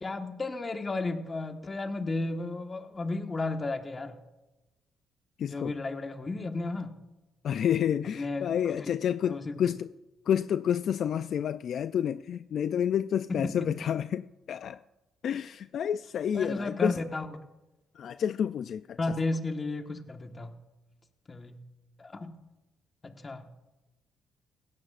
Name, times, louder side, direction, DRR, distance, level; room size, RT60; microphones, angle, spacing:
voice 1, 0.0-4.2 5.4-7.0 8.1-8.9 9.2-9.5 13.3-13.7 16.3-17.3 19.0-20.6 21.3-21.6 22.0-22.4 23.0-23.5, left 3 dB, 30° left, 1.4 m, -33 dB
voice 2, 5.4-5.7 7.4-9.9 10.3-14.8 15.2-17.0 18.0-19.0, left 9 dB, 65° left, 0.3 m, -29 dB
17.0 x 16.5 x 2.5 m
cardioid pair, 90°, 0 cm